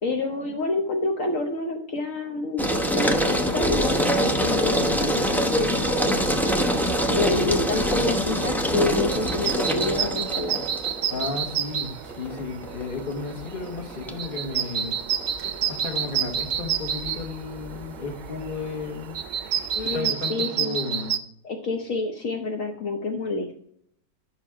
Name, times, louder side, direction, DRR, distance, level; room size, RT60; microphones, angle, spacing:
voice 1, 0.0-6.3 7.1-10.6 19.7-20.8 21.4-23.6, left 3 dB, 60° left, 2 dB, 1.3 m, -28 dB
sound 1, 2.6-20.0, equal, ahead, 0.6 m, -26 dB
sound 2, 8.7-21.2, right 9 dB, 80° right, 1.2 m, -30 dB
voice 2, 11.1-15.0 15.7-19.2 19.8-21.1, left 4 dB, 35° left, 5 dB, 1.5 m, -33 dB
11.0 x 6.1 x 4.9 m, 0.70 s
omnidirectional pair, 1.6 m